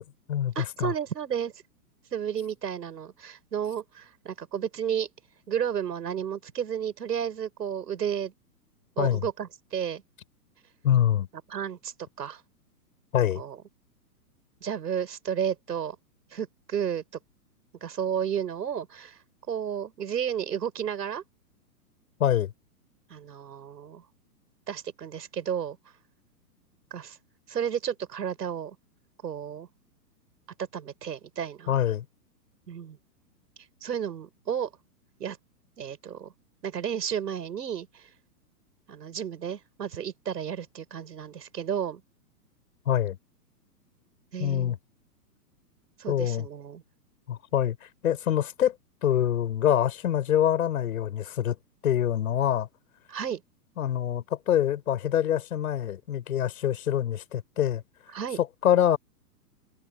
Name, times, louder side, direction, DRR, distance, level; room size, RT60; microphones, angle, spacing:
voice 1, 0.0-0.5 0.8-0.9 9.0-9.2 10.8-11.3 13.1-13.4 22.2-22.5 31.7-32.1 42.9-43.2 44.4-44.8 46.1-46.5 47.3-47.8 48.0-48.8 49.0-51.6 51.8-52.7 53.8-57.8 58.4-59.0, left 10 dB, 60° left, 7.1 m, -25 dB
voice 2, 0.6-1.5 2.1-5.1 5.5-8.3 9.0-10.0 11.5-12.4 13.4-13.6 14.6-16.0 16.3-17.0 17.8-19.2 19.5-21.2 23.1-24.0 24.7-25.8 26.9-27.2 27.5-28.8 29.2-29.7 30.7-31.7 32.7-33.0 33.8-34.7 35.2-35.4 35.8-36.3 36.6-38.1 38.9-42.0 44.3-44.8 46.0-46.8 53.1-53.4 58.1-58.4, right 8 dB, 80° right, 7.4 m, -32 dB
hypercardioid pair, 165°, 48 cm